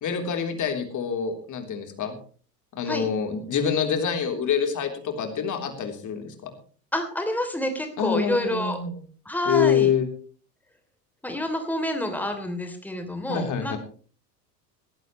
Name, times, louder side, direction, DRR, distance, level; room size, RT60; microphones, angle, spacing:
voice 1, 0.0-2.2 2.7-6.5 8.0-9.0 9.5-10.1 13.3-13.8, left 7 dB, 40° left, 5 dB, 3.5 m, -26 dB
voice 2, 6.9-8.8 9.2-9.9 11.2-13.8, left 1 dB, 5° left, 5 dB, 3.0 m, -28 dB
18.5 x 16.0 x 3.1 m, 0.41 s
figure-of-eight pair, 70°, 48 cm